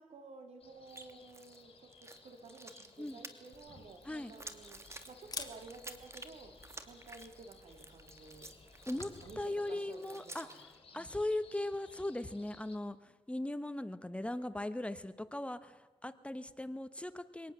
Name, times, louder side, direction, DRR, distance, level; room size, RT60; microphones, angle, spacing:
voice 1, 0.0-6.6 6.8-8.5 8.9-10.5 10.9-11.2, right 3 dB, 75° right, 6 dB, 3.8 m, -53 dB
sound 1, 0.6-12.8, left 5 dB, 60° left, 5.0 m, -60 dB
sound 2, 0.9-1.6 1.9-10.8, right 2 dB, 25° right, 2.6 m, -52 dB
Camera, 3.5-9.4, left 4 dB, 40° left, 2.8 m, -51 dB
voice 2, 8.9-10.5 10.9-17.5, left 1 dB, 10° left, 12 dB, 1.2 m, -39 dB
24.5 x 18.5 x 7.5 m, 1.2 s
cardioid pair, 75°, 11 cm